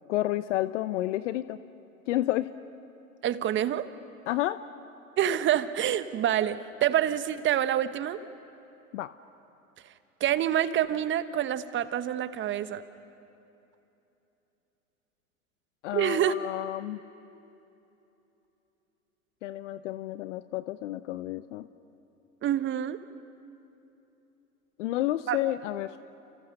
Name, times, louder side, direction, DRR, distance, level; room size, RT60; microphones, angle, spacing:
voice 1, 0.1-1.6 2.1-2.5 4.3-4.6 8.9-9.1 15.8-17.0 19.4-21.7 24.8-26.0, left 15 dB, 55° left, 14 dB, 0.8 m, -30 dB
voice 2, 3.2-3.9 5.2-8.2 10.2-12.8 15.9-16.3 22.4-23.0 25.3-25.4, right 11 dB, 25° right, 12 dB, 1.2 m, -27 dB
30.0 x 29.5 x 6.6 m, 2.9 s
figure-of-eight pair, 95°, 43 cm